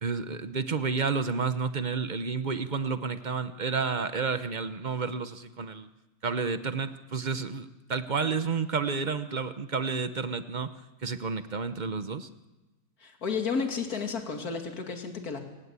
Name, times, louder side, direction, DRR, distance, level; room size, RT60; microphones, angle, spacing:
voice 1, 0.0-5.9 6.2-10.7 11.0-12.3, right 5 dB, 40° right, 11 dB, 0.7 m, -30 dB
voice 2, 13.0-15.4, left 5 dB, 55° left, 4 dB, 2.9 m, -32 dB
27.0 x 17.0 x 8.4 m, 1.1 s
omnidirectional pair, 1.9 m